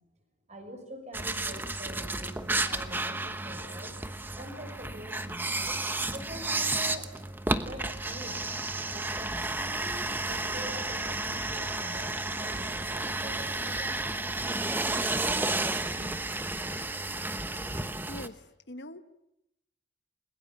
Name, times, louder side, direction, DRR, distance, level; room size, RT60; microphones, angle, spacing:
voice 1, 0.5-4.0 4.4-5.8 6.1-7.2 7.6-8.4 8.9-16.2, equal, 35° right, 5 dB, 6.2 m, -45 dB
sound 1, 1.1-18.3, right 2 dB, 10° right, 1.1 m, -32 dB
voice 2, 18.1-19.0, left 1 dB, 60° left, 11 dB, 1.2 m, -43 dB
29.5 x 21.5 x 8.7 m, 0.86 s
head